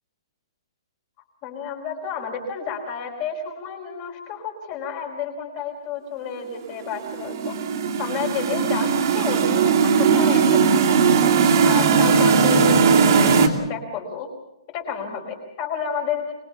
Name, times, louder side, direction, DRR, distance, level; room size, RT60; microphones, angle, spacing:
voice 1, 1.4-7.6 8.0-8.9 9.1-11.2 11.6-14.3 14.7-16.3, left 6 dB, 25° left, 3 dB, 4.8 m, -30 dB
sound 1, 7.1-13.5, right 6 dB, 40° right, 2.6 m, -18 dB
25.0 x 22.0 x 7.2 m, 0.86 s
hypercardioid pair, 170°, 3 cm